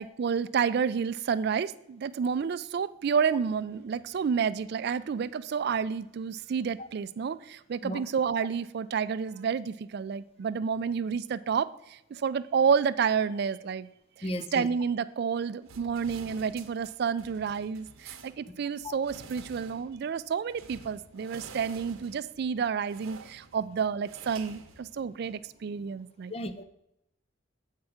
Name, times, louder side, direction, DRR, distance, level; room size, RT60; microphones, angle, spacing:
voice 1, 0.0-13.9 14.2-26.3, right 6 dB, 50° right, 0.3 m, -30 dB
voice 2, 14.2-14.7 18.8-18.9 26.3-26.6, left 1 dB, 30° left, 0.4 m, -34 dB
sound 1, 15.6-25.5, right 4 dB, 85° right, 0.8 m, -50 dB
7.3 x 4.7 x 6.3 m
head